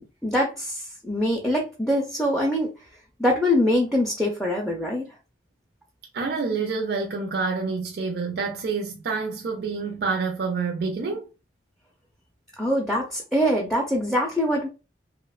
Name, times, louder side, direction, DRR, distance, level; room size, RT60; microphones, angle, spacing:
voice 1, 0.0-2.7 3.2-5.1 12.6-14.7, left 1 dB, ahead, 0.4 m, -24 dB
voice 2, 6.1-11.3, right 4 dB, 60° right, 0.4 m, -27 dB
2.8 x 2.1 x 2.3 m
head